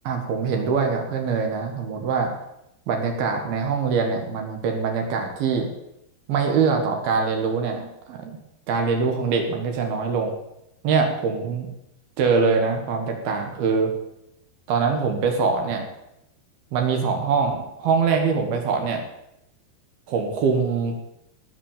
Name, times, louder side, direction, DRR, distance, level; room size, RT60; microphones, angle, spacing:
voice 1, 0.0-2.3 2.9-5.7 6.3-8.4 8.7-10.3 10.8-11.7 12.2-13.9 14.7-15.8 16.7-19.0 20.1-21.0, right 5 dB, 70° right, 3 dB, 3.3 m, -23 dB
18.0 x 6.1 x 7.3 m, 0.83 s
omnidirectional pair, 4.8 m